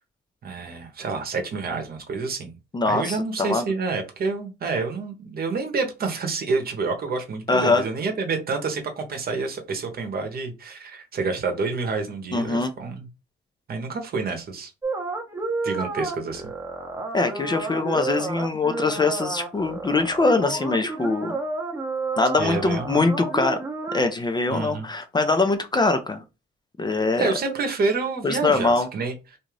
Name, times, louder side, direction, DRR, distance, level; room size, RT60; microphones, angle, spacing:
voice 1, 0.4-2.5 2.8-13.1 13.7-14.7 15.6-16.5 22.4-23.1 24.5-24.9 27.2-29.4, right 4 dB, 50° right, 4 dB, 0.9 m, -28 dB
voice 2, 2.7-3.6 7.5-7.8 12.3-12.7 17.1-21.4 22.2-23.6 23.9-26.2 26.8-27.5 28.2-28.9, left 3 dB, 20° left, 7 dB, 0.4 m, -23 dB
sound 1, 14.8-24.0, right 3 dB, 15° right, 0.8 m, -31 dB
2.6 x 2.4 x 3.1 m, 0.28 s
cardioid pair, 90°, 20 cm